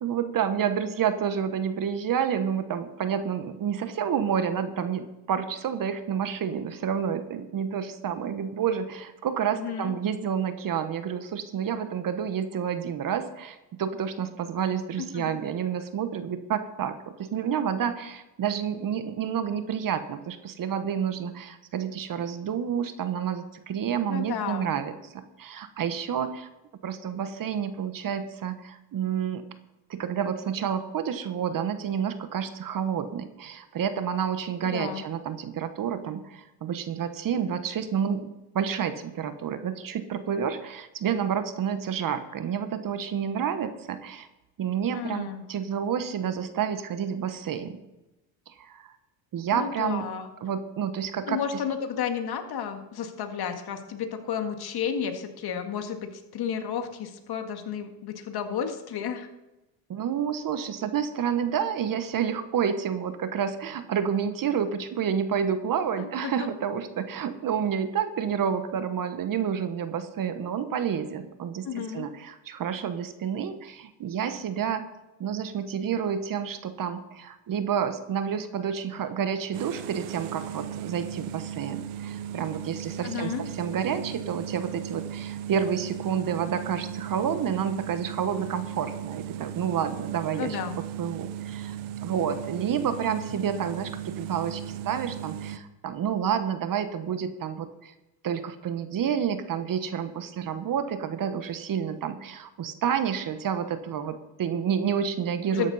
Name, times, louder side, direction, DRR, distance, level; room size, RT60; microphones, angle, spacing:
voice 1, 0.0-26.5 26.8-29.4 29.9-44.3 44.6-47.8 48.5-48.9 49.3-50.1 50.4-51.6 59.9-74.8 75.2-90.6 91.0-91.8 92.0-97.9 98.2-105.7, right 8 dB, 40° right, 10 dB, 1.2 m, -29 dB
voice 2, 9.6-10.0 15.1-15.4 24.1-24.7 34.6-35.0 44.9-45.4 49.5-50.3 51.3-59.3 66.0-66.5 71.7-72.1 83.0-83.5 90.4-90.8 105.5-105.7, left 7 dB, 50° left, 6 dB, 2.0 m, -32 dB
sound 1, 79.5-95.6, right 10 dB, 70° right, 1.0 m, -37 dB
13.5 x 10.5 x 4.2 m, 0.98 s
supercardioid pair, 95°, 50 cm